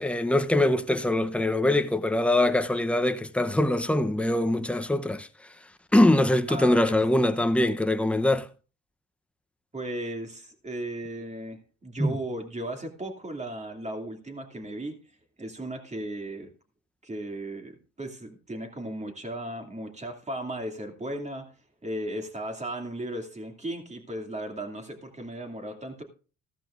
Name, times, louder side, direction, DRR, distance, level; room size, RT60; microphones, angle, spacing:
voice 1, 0.0-5.3 5.9-8.5 12.0-12.2, left 1 dB, 5° left, 0.8 m, -23 dB
voice 2, 6.5-6.9 9.7-15.0 15.4-16.5 17.0-21.5 21.8-26.0, right 1 dB, 25° right, 2.6 m, -36 dB
15.0 x 13.0 x 2.5 m
cardioid pair, 90°, 30 cm